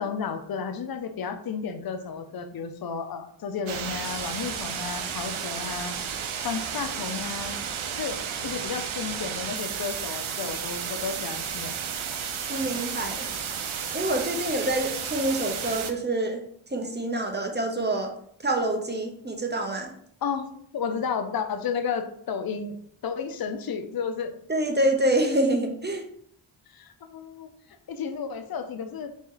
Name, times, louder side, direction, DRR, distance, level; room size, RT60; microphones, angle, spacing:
voice 1, 0.0-5.9 6.4-7.6 8.0-8.2 8.4-11.8 20.2-22.8 23.0-24.3 26.7-29.1, left 6 dB, 50° left, 7 dB, 0.6 m, -32 dB
sound 1, 3.7-15.9, right 7 dB, 85° right, 0.7 m, -33 dB
voice 2, 12.5-13.3 13.9-16.4 16.7-18.1 18.4-19.9 24.5-26.0, right 1 dB, 20° right, 3 dB, 0.9 m, -26 dB
3.9 x 3.1 x 3.8 m, 0.65 s
cardioid pair, 50°, 47 cm